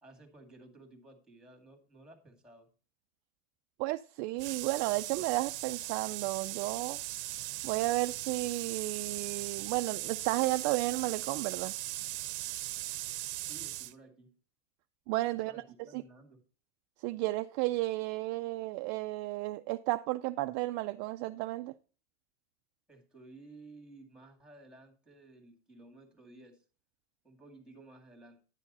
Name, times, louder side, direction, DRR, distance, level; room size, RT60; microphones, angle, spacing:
voice 1, 0.0-2.7 13.4-14.4 15.4-16.4 22.9-26.6 27.2-28.4, right 2 dB, ahead, 2.1 m, -55 dB
voice 2, 3.8-7.0 7.6-11.8 15.1-16.0 17.0-21.7, right 19 dB, 45° right, 0.4 m, -33 dB
sound 1, 4.4-13.9, right 17 dB, 80° right, 0.7 m, -39 dB
10.5 x 7.2 x 4.0 m
supercardioid pair, 140°, 34 cm